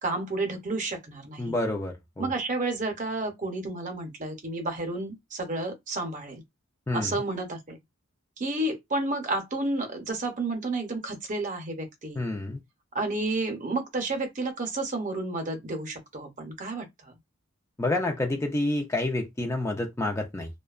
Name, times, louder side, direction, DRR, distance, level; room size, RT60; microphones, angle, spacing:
voice 1, 0.0-1.6 2.2-6.4 6.9-7.8 8.4-12.3 12.9-17.1, right 2 dB, 40° right, 0.7 m, -31 dB
voice 2, 1.4-2.3 6.9-7.1 12.2-12.6 17.8-20.5, left 2 dB, 15° left, 0.4 m, -28 dB
2.6 x 2.2 x 2.3 m
head